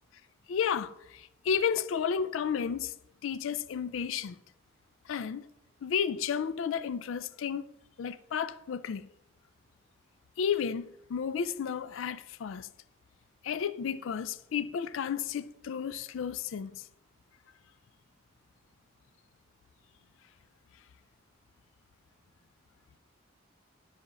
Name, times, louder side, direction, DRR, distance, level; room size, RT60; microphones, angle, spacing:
voice 1, 0.5-2.9 3.2-4.4 5.1-5.5 5.8-7.7 8.0-9.1 10.4-12.7 13.4-16.8, left 7 dB, 70° left, 0.4 m, -32 dB
10.0 x 4.3 x 6.8 m
head